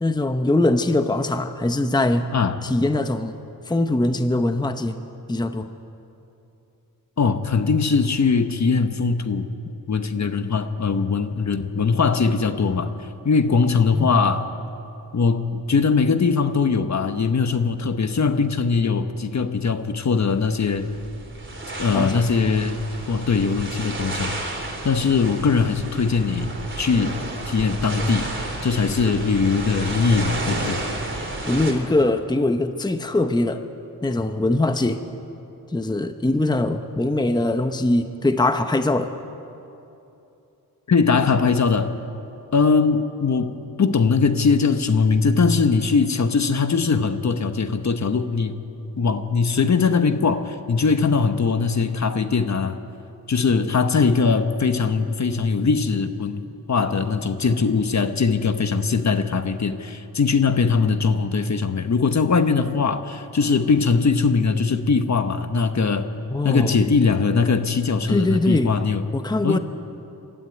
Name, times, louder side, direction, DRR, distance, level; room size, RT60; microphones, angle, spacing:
voice 1, 0.0-2.3 2.6-3.4 3.7-5.0 5.3-5.7 13.9-14.1 18.2-18.4 21.9-22.2 31.5-33.6 34.0-35.0 35.7-39.1 66.3-66.8 68.1-68.7 69.1-69.6, left 2 dB, 10° left, 8 dB, 0.8 m, -22 dB
voice 2, 7.2-9.5 9.9-12.9 13.2-14.5 15.1-20.9 21.8-22.8 23.1-24.4 24.8-27.2 27.5-28.3 28.6-30.8 40.9-41.9 42.5-48.5 49.0-52.8 53.3-56.4 56.7-66.1 66.4-69.0 69.4-69.6, left 5 dB, 50° left, 9 dB, 1.1 m, -21 dB
sound 1, 20.3-31.7, right 2 dB, 30° right, 3.6 m, -32 dB
24.0 x 13.0 x 9.4 m, 2.9 s
cardioid pair, 85°, 36 cm